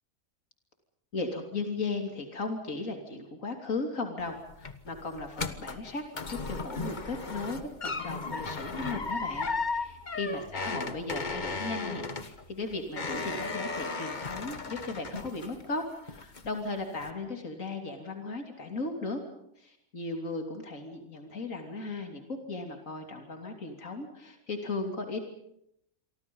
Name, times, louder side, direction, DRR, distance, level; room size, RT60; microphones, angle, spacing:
voice 1, 1.1-19.2 19.6-25.2, left 3 dB, 65° left, 4 dB, 3.5 m, -36 dB
sound 1, 4.2-15.8 16.1-16.6 17.0-17.1, left 3 dB, 35° left, 1.5 m, -35 dB
28.5 x 24.0 x 5.5 m, 0.75 s
omnidirectional pair, 1.5 m